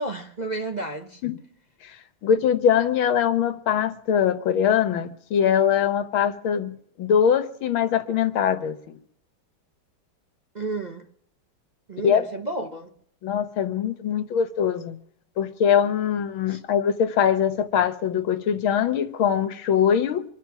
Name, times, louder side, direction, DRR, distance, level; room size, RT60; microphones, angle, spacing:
voice 1, 0.0-1.2 10.5-11.0 11.9-12.9 16.5-16.6, right 2 dB, 30° right, 0.8 m, -31 dB
voice 2, 2.2-8.8 12.0-12.2 13.2-15.0 15.4-20.2, left 8 dB, 85° left, 1.9 m, -22 dB
24.5 x 9.4 x 6.0 m
omnidirectional pair, 2.2 m